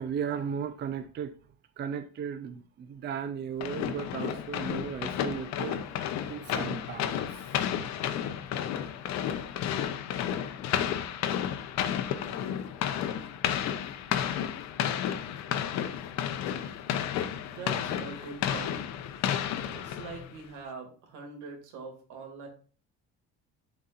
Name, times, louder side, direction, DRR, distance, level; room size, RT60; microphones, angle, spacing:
voice 1, 0.0-1.3 1.8-7.6 9.1-9.2, right 7 dB, 35° right, 0.5 m, -36 dB
sound 1, 3.6-20.4, left 9 dB, 65° left, 0.8 m, -32 dB
voice 2, 17.5-18.8 19.7-22.5, right 4 dB, 85° right, 2.4 m, -43 dB
11.5 x 4.2 x 2.5 m
cardioid pair, 150°, 30 cm